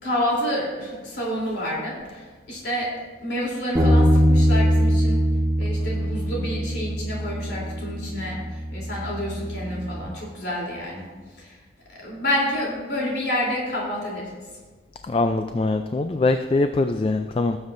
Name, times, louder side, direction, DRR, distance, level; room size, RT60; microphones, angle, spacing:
voice 1, 0.0-2.0 2.5-2.9 3.2-5.3 5.6-8.4 8.7-11.0 11.4-11.5 12.0-14.3, equal, 75° left, -4 dB, 3.2 m, -28 dB
Bass guitar, 3.8-10.0, equal, 25° right, 1.1 m, -22 dB
voice 2, 15.1-17.6, left 2 dB, 30° left, 8 dB, 0.3 m, -22 dB
18.0 x 7.2 x 2.6 m, 1.3 s
head